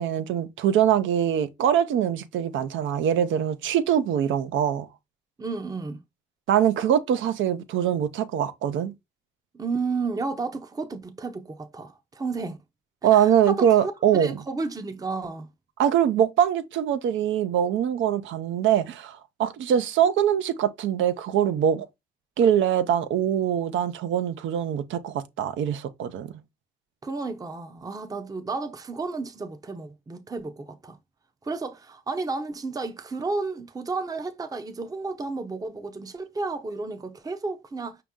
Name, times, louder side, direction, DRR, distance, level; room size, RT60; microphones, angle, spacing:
voice 1, 0.0-4.9 6.5-8.9 13.0-14.4 15.8-21.9 22.4-26.4, right 9 dB, 75° right, 0.6 m, -23 dB
voice 2, 5.4-6.0 9.5-12.6 13.1-15.5 27.0-31.0 31.4-38.0, right 3 dB, 20° right, 0.6 m, -32 dB
5.2 x 2.9 x 3.6 m
cardioid pair, 90°, 20 cm